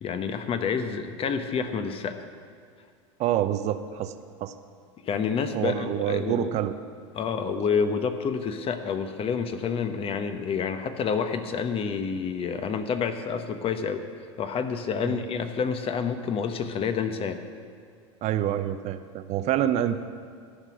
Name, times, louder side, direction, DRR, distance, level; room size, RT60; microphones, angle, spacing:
voice 1, 0.0-2.3 5.0-6.5 7.1-14.1 14.4-17.4, left 6 dB, 35° left, 8 dB, 1.1 m, -28 dB
voice 2, 3.2-4.1 4.4-4.5 5.5-6.7 15.0-15.2 18.2-20.0, right 11 dB, 45° right, 11 dB, 0.7 m, -27 dB
13.0 x 6.0 x 9.5 m, 2.3 s
hypercardioid pair, 90°, 16 cm